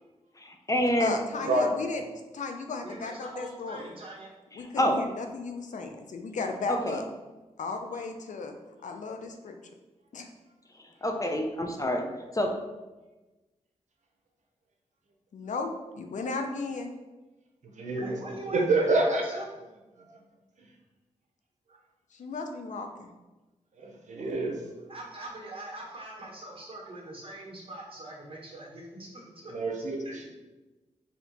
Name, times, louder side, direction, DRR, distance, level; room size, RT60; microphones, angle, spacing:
voice 1, 0.4-1.2 4.5-5.0 6.7-7.0 10.8-12.5, equal, 25° left, 3 dB, 0.6 m, -28 dB
voice 2, 1.0-2.0 2.3-3.9 4.5-7.0 7.6-8.6 8.8-9.6 10.1-10.3 15.3-16.9 22.1-23.1, left 3 dB, 75° left, 5 dB, 0.5 m, -35 dB
voice 3, 2.8-4.3 17.9-19.5 24.9-29.5 30.0-30.3, right 1 dB, 45° right, -2 dB, 1.5 m, -42 dB
voice 4, 17.6-19.4 20.0-20.1 20.6-20.7 23.8-24.6 29.5-30.3, right 2 dB, 70° right, 1 dB, 0.8 m, -28 dB
4.2 x 2.8 x 4.1 m, 1.1 s
cardioid pair, 65°, 13 cm